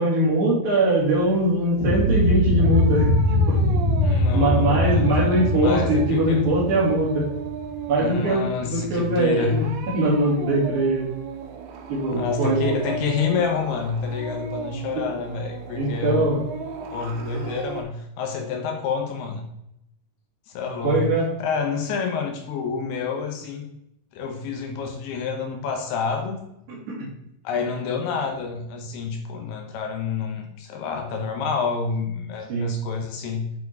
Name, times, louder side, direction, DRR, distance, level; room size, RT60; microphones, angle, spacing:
voice 1, 0.0-3.1 3.5-3.6 4.3-7.2 7.9-9.5 9.9-11.1 11.9-12.8 15.1-15.2 15.7-16.4 20.8-21.3 27.0-27.1 32.5-32.7, right 1 dB, 60° right, -6 dB, 4.2 m, -21 dB
sound 1, 0.8-17.8, right 6 dB, 90° right, 3.2 m, -36 dB
sound 2, 1.8-7.9, left 1 dB, 60° left, 2.1 m, -22 dB
voice 2, 4.0-6.4 8.0-9.6 12.1-16.2 16.9-19.5 20.5-21.1 21.4-23.7 24.1-26.4 27.4-33.5, left 5 dB, 75° left, 3 dB, 2.7 m, -28 dB
8.3 x 4.3 x 4.6 m, 0.79 s
omnidirectional pair, 4.9 m